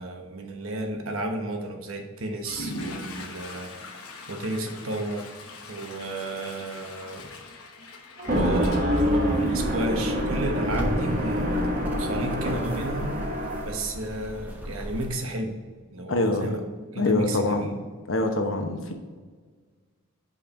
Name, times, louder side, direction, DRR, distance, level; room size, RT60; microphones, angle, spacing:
voice 1, 0.0-3.9 4.3-5.3 5.7-7.3 8.3-11.6 12.0-13.2 13.6-15.6 15.9-17.8, right 1 dB, 70° right, 4 dB, 1.1 m, -33 dB
Water / Toilet flush, 2.3-10.1, left 2 dB, 90° left, 1.0 m, -41 dB
sound 1, 8.2-13.8, equal, 40° right, 1.2 m, -26 dB
sound 2, 9.0-15.1, equal, 10° right, 1.0 m, -36 dB
voice 2, 16.1-16.5 17.0-17.7 18.1-18.9, left 2 dB, 60° left, 4 dB, 1.0 m, -24 dB
5.8 x 5.2 x 5.2 m, 1.5 s
head